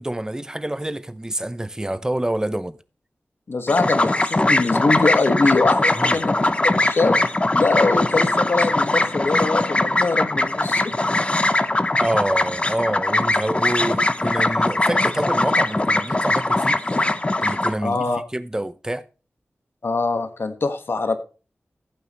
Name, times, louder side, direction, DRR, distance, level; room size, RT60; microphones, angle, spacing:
voice 1, 0.0-2.8 6.0-6.1 12.0-16.8 17.4-19.0, right 1 dB, 15° right, 0.7 m, -27 dB
voice 2, 3.5-6.3 6.6-7.1 7.5-10.9 17.8-18.2 19.8-21.2, left 3 dB, 70° left, 1.5 m, -22 dB
sound 1, 3.7-17.7, left 2 dB, 30° left, 0.9 m, -21 dB
15.5 x 8.9 x 3.1 m
wide cardioid pair, 90°, 4 cm